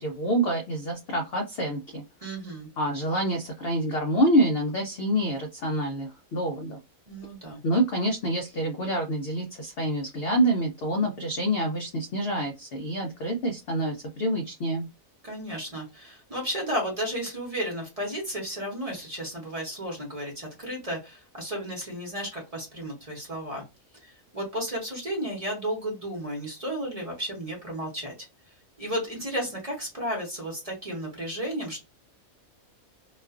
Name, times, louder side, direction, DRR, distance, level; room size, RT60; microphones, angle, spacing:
voice 1, 0.0-2.0 2.8-6.8 7.6-14.9, right 1 dB, 65° left, 3 dB, 0.6 m, -27 dB
voice 2, 2.2-2.7 7.1-7.6 15.2-23.6 23.9-28.3 28.8-31.8, equal, 30° right, -2 dB, 0.8 m, -33 dB
2.4 x 2.3 x 2.3 m, 0.25 s
omnidirectional pair, 1.5 m